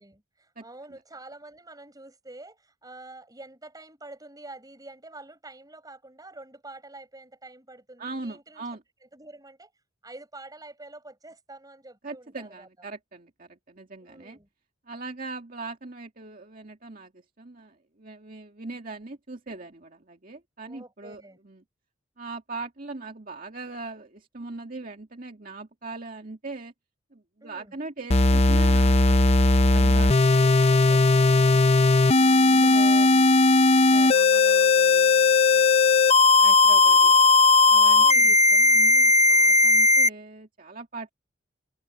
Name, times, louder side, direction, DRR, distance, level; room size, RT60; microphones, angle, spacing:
voice 1, 0.0-8.8 9.1-9.7 10.0-12.7 14.0-14.5 20.6-21.4 27.4-27.8 31.1-31.7 32.2-32.7 37.9-38.4, right 2 dB, 20° right, 6.4 m, -47 dB
voice 2, 8.0-8.8 12.0-14.4 14.9-21.6 22.2-26.7 27.1-31.4 32.2-33.3 33.9-35.7 36.3-37.2 37.7-41.1, right 3 dB, 45° right, 2.2 m, -40 dB
sound 1, 28.1-40.1, left 3 dB, 35° left, 0.8 m, -18 dB
head